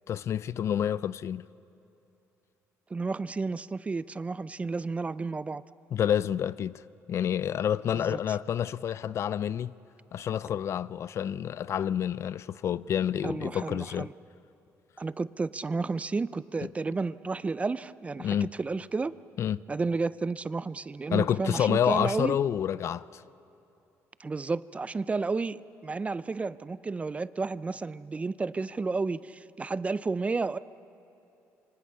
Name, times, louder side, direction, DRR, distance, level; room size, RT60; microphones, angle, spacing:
voice 1, 0.1-1.5 5.9-6.8 7.1-9.7 10.1-14.1 18.2-18.5 19.4-19.6 21.1-23.2, left 9 dB, 55° left, 0.4 m, -28 dB
voice 2, 2.9-5.6 7.9-8.2 13.2-14.1 15.0-19.1 19.7-22.4 24.2-30.6, right 4 dB, 25° right, 0.5 m, -32 dB
26.5 x 25.0 x 5.6 m
cardioid pair, 100°, 6 cm